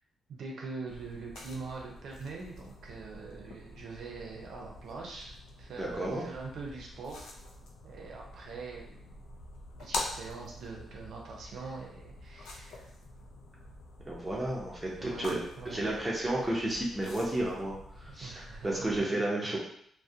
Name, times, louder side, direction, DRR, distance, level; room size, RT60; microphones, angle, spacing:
voice 1, 0.3-7.3 7.8-9.2 9.8-12.9 15.0-15.9 18.1-19.6, right 4 dB, 65° right, -1 dB, 0.5 m, -43 dB
sound 1, 0.9-19.0, left 2 dB, 85° left, 0.4 m, -46 dB
voice 2, 5.8-6.2 14.1-15.4 15.7-18.3 18.6-19.6, right 1 dB, 5° right, -5 dB, 0.5 m, -32 dB
2.3 x 2.0 x 2.6 m, 0.69 s
wide cardioid pair, 160°, 0 cm